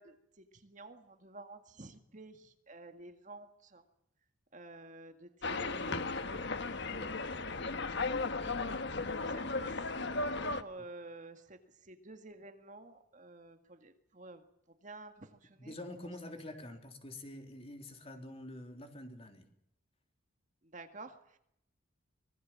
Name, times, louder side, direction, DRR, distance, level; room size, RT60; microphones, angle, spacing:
voice 1, 0.0-3.8 4.5-8.6 9.2-16.1 20.6-21.4, right 2 dB, 35° right, 7 dB, 1.9 m, -52 dB
sound 1, 5.4-10.6, left 3 dB, 55° left, 1.4 m, -36 dB
voice 2, 15.6-19.5, left 1 dB, 30° left, 5 dB, 3.4 m, -46 dB
25.5 x 21.0 x 7.4 m, 0.75 s
head